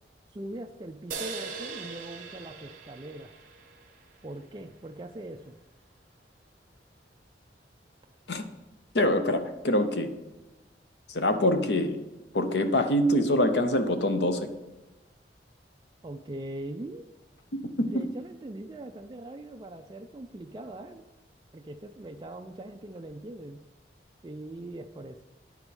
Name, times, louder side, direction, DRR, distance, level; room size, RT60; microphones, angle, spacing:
voice 1, 0.3-3.3 4.2-5.5 16.0-17.1 17.8-21.1 21.5-23.6 24.2-25.2, right 1 dB, 25° right, 3 dB, 0.4 m, -41 dB
sound 1, 1.1-4.6, right 5 dB, 50° right, 1.1 m, -41 dB
voice 2, 8.9-10.1 11.1-12.0 12.3-14.5 17.5-18.0, left 1 dB, 80° left, 8 dB, 0.8 m, -25 dB
9.6 x 4.8 x 5.3 m, 1.1 s
head